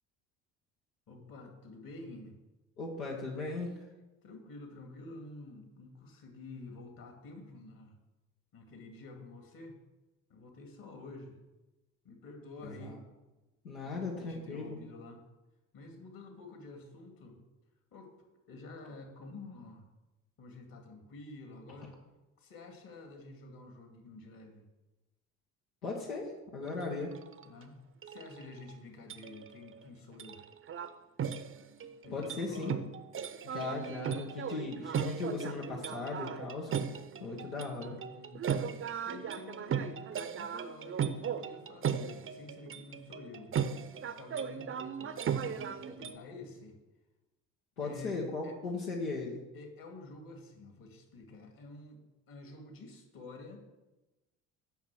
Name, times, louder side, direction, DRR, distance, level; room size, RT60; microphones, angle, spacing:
voice 1, 1.1-2.4 4.2-8.0 8.5-9.8 10.3-11.4 12.0-13.0 13.8-15.2 15.7-17.4 17.9-18.1 18.5-19.8 20.4-22.0 22.4-24.7 27.4-27.8 28.0-30.4 32.0-32.8 38.1-43.6 44.0-46.8 47.8-48.6 49.5-52.0 52.3-53.6, left 2 dB, 55° left, 3 dB, 2.4 m, -49 dB
voice 2, 2.8-3.7 12.6-13.0 13.6-14.8 25.8-27.1 32.1-32.7 33.4-36.7 37.2-38.0 47.8-49.4, left 3 dB, 90° left, -2 dB, 1.3 m, -37 dB
sound 1, 26.6-26.8 27.1-27.5 28.0-28.7 29.1-29.8 30.2-30.9 31.2-46.2, right 7 dB, 30° right, 0.6 m, -37 dB
7.2 x 5.9 x 7.5 m, 1.1 s
hypercardioid pair, 60°, 42 cm